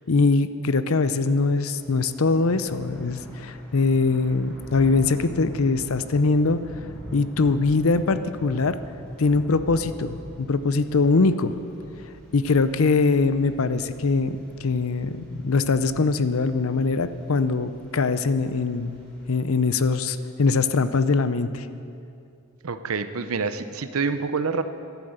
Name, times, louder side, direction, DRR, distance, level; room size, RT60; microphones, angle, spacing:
voice 1, 0.1-6.6 7.1-8.8 9.2-10.2 10.5-11.5 12.3-19.0 19.3-21.7, left 3 dB, 70° left, 12 dB, 0.6 m, -22 dB
Thunder / Rain, 1.0-19.4, equal, 5° left, 3.2 m, -44 dB
voice 2, 22.6-24.6, right 4 dB, 75° right, 11 dB, 0.7 m, -27 dB
11.5 x 11.0 x 8.0 m, 2.6 s
head